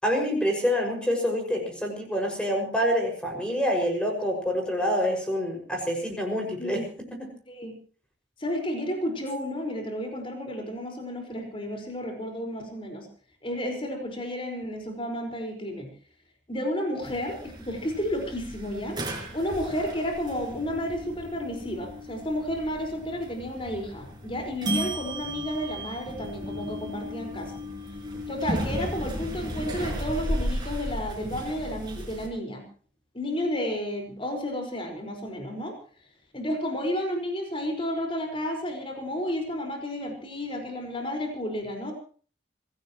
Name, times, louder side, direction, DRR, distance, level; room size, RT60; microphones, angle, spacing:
voice 1, 0.0-6.8 7.1-7.3, equal, 5° left, 2 dB, 6.1 m, -27 dB
voice 2, 8.4-13.1 13.4-15.9 16.5-19.0 19.3-27.5 28.3-32.6 33.1-35.8 36.3-41.9, equal, 30° left, 3 dB, 5.1 m, -32 dB
sound 1, 17.0-32.3, equal, 25° right, 5.6 m, -35 dB
26.0 x 17.5 x 3.1 m, 0.42 s
head